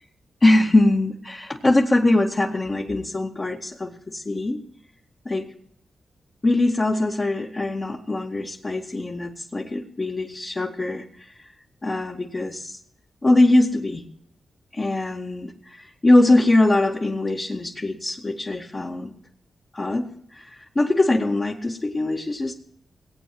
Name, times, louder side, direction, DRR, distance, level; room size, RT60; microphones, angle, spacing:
voice 1, 0.4-4.6 5.3-5.4 6.4-11.3 11.8-12.8 13.2-14.1 14.7-19.1 19.7-20.1 20.3-22.5, left 2 dB, 40° left, -3 dB, 2.0 m, -22 dB
19.0 x 8.7 x 7.8 m, 0.67 s
cardioid pair, 50°, 0 cm